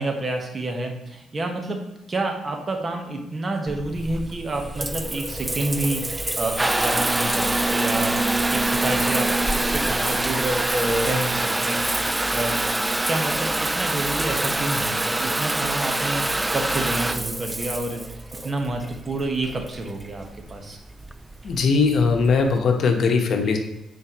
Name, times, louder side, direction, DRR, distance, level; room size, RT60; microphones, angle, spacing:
voice 1, 0.0-1.8 2.1-8.1 8.5-12.6 13.1-16.2 16.5-18.0 18.4-20.8, right 2 dB, 30° right, 3 dB, 1.3 m, -28 dB
Water tap faucet / Bathtub (filling or washing) / Trickle dribble, 3.7-22.6, right 2 dB, 15° right, 0.3 m, -25 dB
voice 2, 21.4-23.6, left 4 dB, 60° left, 4 dB, 1.0 m, -20 dB
9.6 x 4.4 x 3.0 m, 0.93 s
cardioid pair, 90°, 0 cm